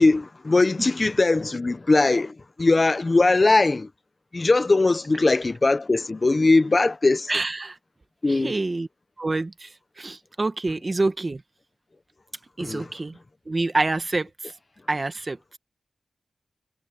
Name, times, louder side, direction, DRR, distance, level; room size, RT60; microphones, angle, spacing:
voice 1, 0.0-3.9 4.3-7.3 8.2-8.5 12.6-12.9, left 3 dB, 35° left, 0.8 m, -20 dB
voice 2, 7.3-7.8 8.3-8.9 9.2-9.7 10.0-11.4 12.6-13.2 13.5-14.3 14.9-15.6, right 2 dB, 35° right, 1.4 m, -26 dB
wide cardioid pair, 100°, 0 cm